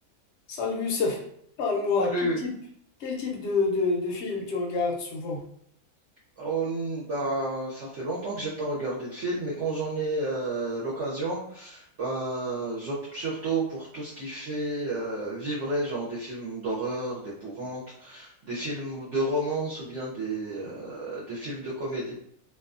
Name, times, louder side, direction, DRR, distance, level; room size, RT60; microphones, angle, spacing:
voice 1, 0.5-1.2 1.6-2.5 3.0-5.4, left 4 dB, 60° left, 0 dB, 0.7 m, -27 dB
voice 2, 2.0-2.4 6.4-22.1, right 2 dB, 60° right, -6 dB, 0.8 m, -31 dB
2.6 x 2.2 x 2.4 m, 0.68 s
omnidirectional pair, 1.6 m